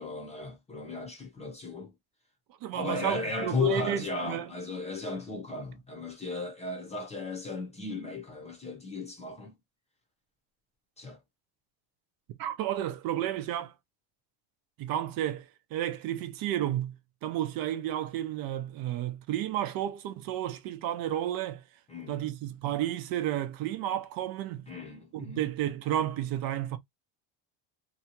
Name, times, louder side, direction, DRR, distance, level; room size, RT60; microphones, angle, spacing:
voice 1, 0.0-1.9 2.7-9.5 11.0-11.2 21.9-22.3 24.7-25.4, left 4 dB, 15° left, 0.7 m, -35 dB
voice 2, 2.6-4.5 12.4-13.7 14.8-17.0 17.2-21.6 22.1-24.7 25.1-26.8, right 12 dB, 50° right, 0.6 m, -32 dB
2.8 x 2.3 x 2.8 m
cardioid pair, 135°, 46 cm